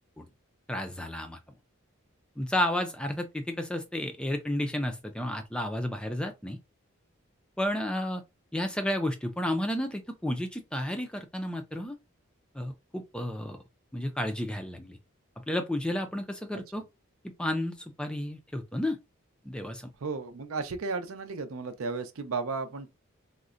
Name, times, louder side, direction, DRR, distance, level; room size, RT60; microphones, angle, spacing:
voice 1, 0.7-1.4 2.4-6.6 7.6-8.2 8.5-12.0 12.5-13.6 13.9-15.0 15.5-16.8 17.4-19.0 19.5-19.9, left 1 dB, 5° left, 0.3 m, -32 dB
voice 2, 16.5-16.8 20.0-22.9, right 4 dB, 75° right, 0.5 m, -34 dB
3.7 x 2.1 x 2.4 m
head